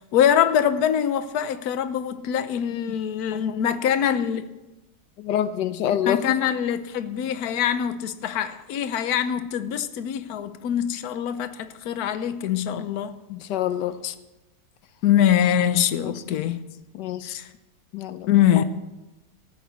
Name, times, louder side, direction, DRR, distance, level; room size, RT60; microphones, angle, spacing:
voice 1, 0.0-4.5 5.9-13.1 14.0-14.1 15.0-16.6 17.3-17.5 18.3-18.7, left 9 dB, 65° left, 1.3 m, -23 dB
voice 2, 5.2-6.2 13.3-14.0 16.0-16.4 16.9-17.4 17.9-18.3, left 10 dB, 85° left, 1.3 m, -27 dB
14.5 x 8.2 x 9.3 m
omnidirectional pair, 1.8 m